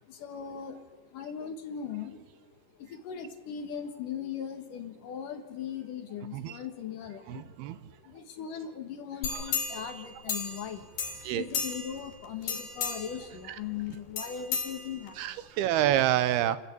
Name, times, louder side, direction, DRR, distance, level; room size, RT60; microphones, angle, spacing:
voice 1, 0.0-2.5 2.8-7.5 7.9-10.9 11.2-15.6, left 8 dB, 60° left, 5 dB, 2.8 m, -39 dB
voice 2, 7.3-7.8 11.2-11.5 15.2-16.6, right 12 dB, 80° right, 13 dB, 2.7 m, -27 dB
sound 1, 9.2-10.7 11.0-12.0 12.4-13.2 14.2-15.3 15.7-15.8, left 5 dB, 90° left, 4.9 m, -34 dB
29.0 x 13.0 x 8.6 m, 1.4 s
omnidirectional pair, 4.6 m